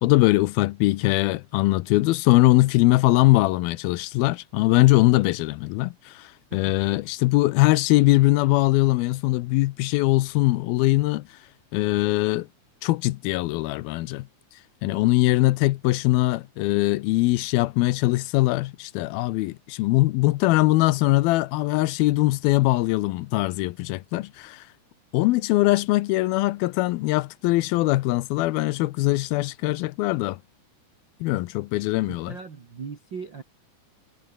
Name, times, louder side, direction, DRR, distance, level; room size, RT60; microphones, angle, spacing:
voice 1, 0.0-11.3 11.7-12.5 12.8-14.3 14.8-24.7 25.1-30.4 31.2-32.4, left 19 dB, 80° left, 2.2 m, -21 dB
voice 2, 32.1-33.4, right 5 dB, 35° right, 2.0 m, -38 dB
omnidirectional pair, 4.9 m